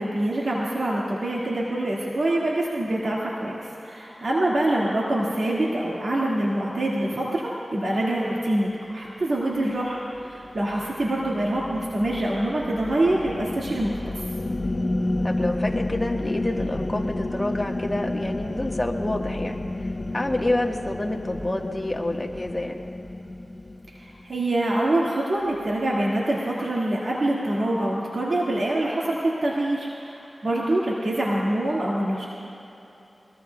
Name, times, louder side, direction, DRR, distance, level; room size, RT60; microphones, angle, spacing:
voice 1, 0.0-14.0 24.0-32.3, right 1 dB, 70° right, -5 dB, 1.8 m, -25 dB
sound 1, 9.8-24.3, left 2 dB, 50° left, 0.7 m, -31 dB
voice 2, 15.2-22.8, left 1 dB, 20° left, 1 dB, 1.3 m, -28 dB
21.0 x 20.5 x 2.2 m, 2.9 s
wide cardioid pair, 55°, 0 cm